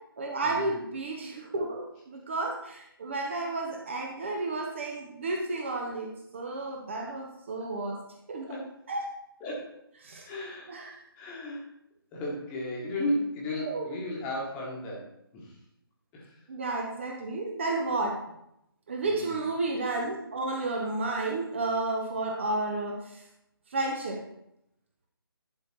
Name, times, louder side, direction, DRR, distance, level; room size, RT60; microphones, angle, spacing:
voice 1, 0.2-8.0 8.3-8.5 8.9-9.0 10.0-10.3 10.7-11.0 13.6-13.9 16.5-18.2 18.9-23.2 23.7-24.2, right 2 dB, 30° right, 1 dB, 1.0 m, -32 dB
voice 2, 9.4-9.8 10.2-10.9 11.1-11.7 12.1-15.6 16.1-16.3 19.0-19.5, left 1 dB, 10° left, -3 dB, 1.5 m, -35 dB
11.0 x 4.0 x 4.4 m, 0.79 s
figure-of-eight pair, 150°, 13 cm